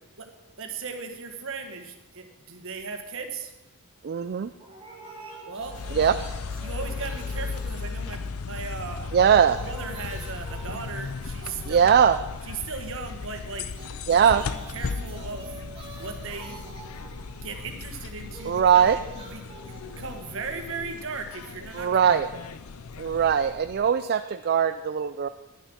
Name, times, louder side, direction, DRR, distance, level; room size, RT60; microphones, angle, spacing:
voice 1, 0.6-3.5 5.5-5.8 6.6-12.0 12.5-13.7 14.1-15.5 16.0-16.7 17.4-19.0 19.3-19.5 20.0-22.2, right 4 dB, 60° right, 5 dB, 1.5 m, -37 dB
voice 2, 4.0-4.5 5.9-6.2 9.1-9.6 11.7-12.2 14.1-14.4 18.5-19.0 21.7-22.3 23.0-25.3, right 8 dB, 45° right, 10 dB, 0.4 m, -20 dB
sound 1, 4.6-8.6 8.9-12.6 13.6-21.6, right 3 dB, 25° right, 2.3 m, -47 dB
sound 2, 5.6-24.1, left 4 dB, 70° left, 0.6 m, -36 dB
Motorcycle / Engine, 13.2-20.9, right 1 dB, 20° left, 5.1 m, -53 dB
10.5 x 10.0 x 6.2 m, 1.0 s
head